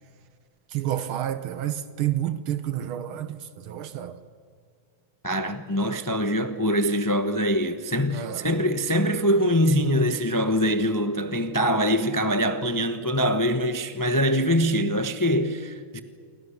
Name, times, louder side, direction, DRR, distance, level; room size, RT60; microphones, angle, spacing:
voice 1, 0.7-3.4 3.6-4.2 8.1-8.5, right 11 dB, 75° right, 1.8 m, -29 dB
voice 2, 5.2-16.0, equal, 30° left, 0.3 m, -23 dB
28.0 x 24.0 x 7.2 m
omnidirectional pair, 2.3 m